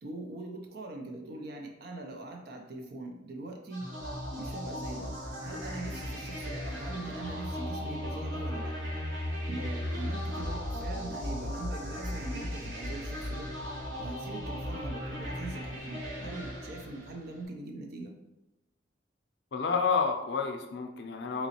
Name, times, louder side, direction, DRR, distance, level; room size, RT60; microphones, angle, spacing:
voice 1, 0.0-3.9 4.4-5.1 5.4-8.8 9.4-13.5 14.0-18.1, right 2 dB, 55° right, 2 dB, 0.5 m, -42 dB
sound 1, 3.7-17.4, equal, 90° right, 1.1 m, -36 dB
voice 2, 19.5-21.5, left 5 dB, 60° left, 3 dB, 0.5 m, -29 dB
3.8 x 3.0 x 2.8 m, 0.96 s
head